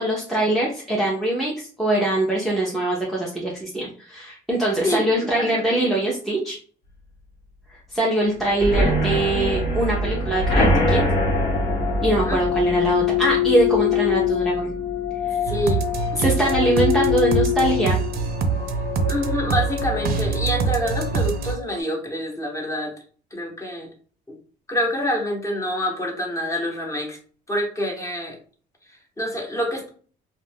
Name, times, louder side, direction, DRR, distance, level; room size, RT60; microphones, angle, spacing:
voice 1, 0.0-6.6 7.9-11.0 12.0-14.7 15.3-15.4 16.2-18.0, right 1 dB, ahead, -4 dB, 0.6 m, -23 dB
voice 2, 4.8-5.6 12.2-12.4 15.4-15.8 16.1-16.7 19.1-22.9 23.3-23.9 24.3-24.4 24.7-27.2 27.5-28.4 28.9-29.9, left 1 dB, 15° left, 0 dB, 1.0 m, -27 dB
sound 1, 8.6-16.2 16.6-17.0 17.2-17.3 17.7-17.8, right 1 dB, 65° left, 1.2 m, -24 dB
sound 2, 9.9-21.8, left 13 dB, 50° left, 0.5 m, -26 dB
sound 3, 15.5-21.5, right 5 dB, 65° right, 0.5 m, -25 dB
2.4 x 2.2 x 3.4 m, 0.43 s
cardioid pair, 110°, 17 cm